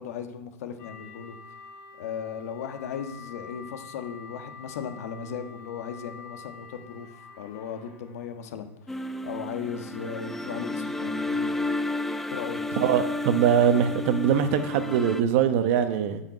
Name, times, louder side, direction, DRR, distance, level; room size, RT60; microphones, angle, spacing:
voice 1, 0.0-1.4 1.9-7.1 7.4-11.5 12.3-12.6, left 7 dB, 70° left, 7 dB, 1.4 m, -37 dB
sound 1, 0.8-8.8, left 5 dB, 50° left, 3.2 m, -47 dB
sound 2, 8.9-15.2, left 2 dB, 5° left, 0.4 m, -31 dB
voice 2, 12.8-16.2, right 8 dB, 50° right, 9 dB, 1.0 m, -22 dB
10.5 x 5.7 x 8.3 m, 0.98 s
supercardioid pair, 150°, 8 cm